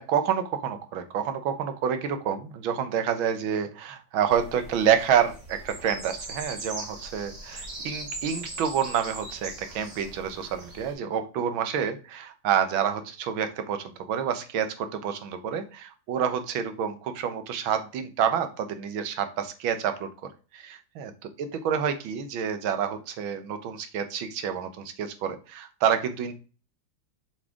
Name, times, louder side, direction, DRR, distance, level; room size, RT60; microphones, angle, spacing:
voice 1, 0.0-20.1 20.5-26.3, right 8 dB, 80° right, 8 dB, 1.6 m, -28 dB
sound 1, 4.3-10.9, right 2 dB, 55° right, 3.1 m, -40 dB
7.4 x 4.2 x 3.6 m, 0.35 s
omnidirectional pair, 2.2 m